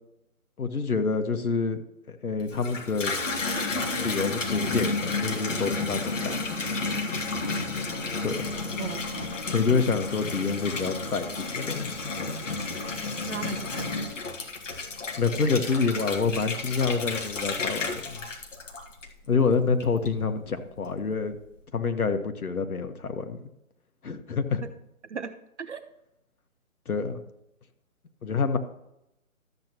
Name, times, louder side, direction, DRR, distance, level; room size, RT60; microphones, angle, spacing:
voice 1, 0.6-1.8 2.1-3.1 4.0-6.6 8.2-8.5 9.4-12.5 15.2-18.2 19.3-21.3 21.7-23.4 24.0-24.6 26.9-27.2 28.2-28.6, left 4 dB, 90° left, 8 dB, 1.4 m, -27 dB
Water tap faucet / Bathtub (filling or washing), 2.4-19.3 19.8-20.4, left 3 dB, 60° left, 1.8 m, -31 dB
voice 2, 8.8-9.3 9.7-9.8 13.3-14.1 24.6-24.7 25.1-25.8, right 6 dB, 55° right, 10 dB, 0.7 m, -37 dB
13.0 x 8.1 x 3.0 m, 0.85 s
hypercardioid pair, 165°, 43 cm